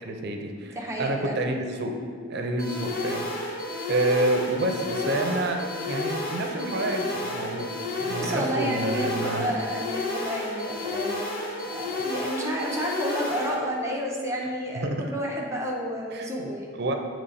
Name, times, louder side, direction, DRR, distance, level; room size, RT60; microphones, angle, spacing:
voice 1, 0.0-1.9 2.3-3.3 3.9-5.6 5.9-7.7 8.0-9.5 14.7-15.0 16.1-16.5 16.8-16.9, right 2 dB, 60° right, 4 dB, 0.6 m, -28 dB
voice 2, 0.7-1.4 8.2-11.3 11.6-16.7, equal, 15° right, -2 dB, 0.7 m, -31 dB
sound 1, 2.6-13.6, left 2 dB, 50° left, 1.0 m, -31 dB
8.2 x 3.1 x 4.1 m, 2.1 s
head